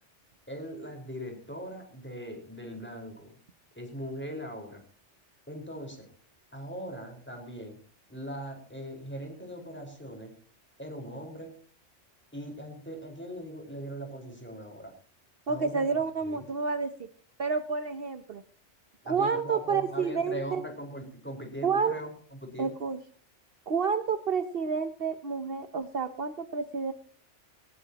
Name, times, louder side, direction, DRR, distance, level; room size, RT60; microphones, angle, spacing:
voice 1, 0.5-3.3 3.7-4.8 5.5-6.1 6.5-7.8 8.1-10.3 10.8-11.5 12.3-14.9 15.5-15.9 16.2-16.4 19.0-22.8, equal, 10° left, 2 dB, 4.8 m, -40 dB
voice 2, 15.5-16.9 17.4-18.4 19.1-20.6 21.6-21.9 22.6-23.0 23.7-26.9, right 5 dB, 55° right, 9 dB, 1.1 m, -29 dB
19.5 x 19.0 x 2.9 m, 0.42 s
omnidirectional pair, 1.2 m